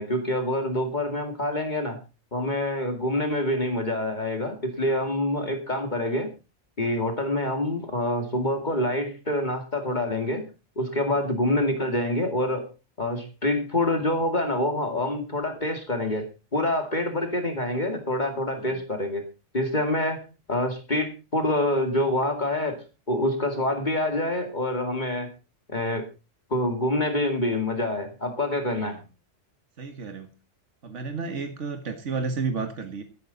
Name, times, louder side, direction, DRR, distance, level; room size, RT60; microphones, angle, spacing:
voice 1, 0.0-2.0 2.3-6.3 6.8-10.4 10.8-12.7 13.0-19.2 19.5-20.2 20.5-25.3 25.7-26.1 26.5-29.0, left 1 dB, 40° left, 5 dB, 2.4 m, -26 dB
voice 2, 29.8-30.3 30.8-33.0, right 4 dB, 75° right, 7 dB, 1.9 m, -31 dB
13.5 x 12.5 x 4.1 m, 0.31 s
omnidirectional pair, 1.2 m